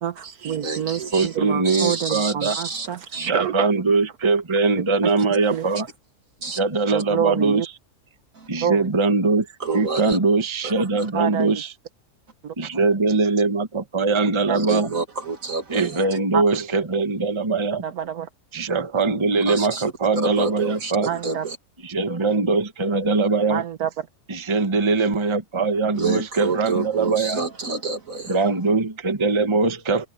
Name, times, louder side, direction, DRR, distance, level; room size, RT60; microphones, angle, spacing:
voice 1, 0.0-3.7 5.5-5.7 6.9-7.7 8.6-8.9 11.1-11.5 12.4-12.5 14.5-14.6 16.3-16.4 17.8-18.3 21.1-21.4 23.5-23.9, right 8 dB, 75° right, 1.5 m, -27 dB
voice 2, 0.6-1.4 1.6-3.3 6.4-6.6 8.3-8.5 9.6-10.2 10.6-11.1 14.5-16.1 19.5-21.6 25.9-28.4, right 4 dB, 60° right, 2.9 m, -28 dB
voice 3, 1.1-2.6 3.1-5.9 6.5-7.7 8.5-9.5 9.7-11.7 12.6-14.9 15.7-17.8 18.5-21.1 21.8-23.6 24.3-27.4 28.3-30.1, right 3 dB, 20° right, 1.2 m, -22 dB
omnidirectional pair, 1.6 m